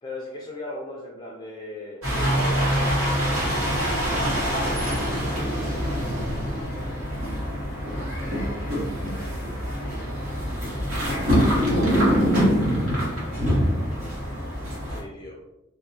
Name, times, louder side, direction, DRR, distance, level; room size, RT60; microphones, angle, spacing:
voice 1, 0.0-4.0 14.9-15.4, left 1 dB, 20° left, -2 dB, 0.3 m, -38 dB
sound 1, 2.0-15.0, equal, 75° right, 1.0 m, -24 dB
voice 2, 4.9-6.0 11.2-12.5, right 1 dB, 20° right, -7 dB, 1.2 m, -41 dB
3.3 x 2.1 x 2.6 m, 0.89 s
head